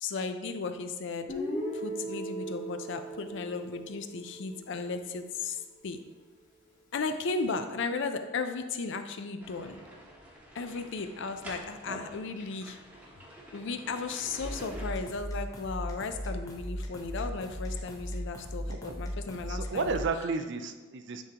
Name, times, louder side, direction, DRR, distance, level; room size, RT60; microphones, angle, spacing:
voice 1, 0.0-1.3 1.7-6.0 6.9-9.8 10.5-12.8 13.5-20.1, left 4 dB, 65° left, 8 dB, 0.5 m, -35 dB
Guitar, 1.3-5.3, right 1 dB, 40° left, 1.3 m, -38 dB
sound 1, 9.4-14.9, equal, 10° right, 0.9 m, -47 dB
sound 2, 14.4-20.1, equal, 20° left, 0.7 m, -37 dB
voice 2, 19.5-21.2, right 4 dB, 60° right, 8 dB, 0.5 m, -32 dB
9.9 x 3.7 x 2.9 m, 1.3 s
head